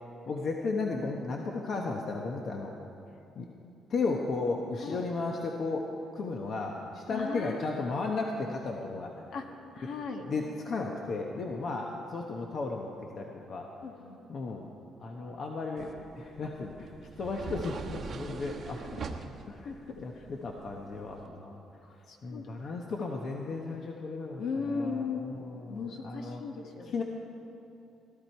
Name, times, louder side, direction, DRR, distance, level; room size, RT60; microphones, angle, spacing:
voice 1, 0.3-2.7 3.4-3.5 3.9-5.9 6.1-9.1 10.3-13.7 14.3-14.7 15.0-16.9 17.2-19.0 19.5-19.7 20.0-21.6 22.2-26.4 26.8-27.0, left 3 dB, 50° left, 1 dB, 1.0 m, -34 dB
voice 2, 7.1-7.8 9.3-9.4 9.7-10.2 13.8-14.2 19.6-20.0 22.1-22.8 24.4-27.0, left 4 dB, 70° left, 3 dB, 1.5 m, -37 dB
sound 1, 15.8-21.3, right 5 dB, 50° right, 1.0 m, -43 dB
16.5 x 12.5 x 4.5 m, 2.8 s
cardioid pair, 115°, 0 cm